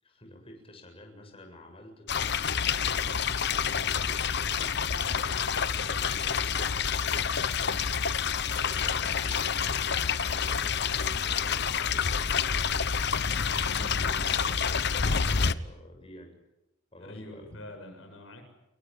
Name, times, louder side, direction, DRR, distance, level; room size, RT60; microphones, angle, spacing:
voice 1, 0.0-6.9 8.6-12.8 13.7-16.3 16.9-17.5, left 1 dB, 30° left, 3 dB, 7.6 m, -50 dB
sound 1, 2.1-15.5, left 6 dB, 60° left, 1.0 m, -28 dB
voice 2, 7.5-7.8 13.7-14.2 17.1-18.5, left 1 dB, 90° left, 5 dB, 7.7 m, -45 dB
28.5 x 22.5 x 9.1 m, 0.90 s
head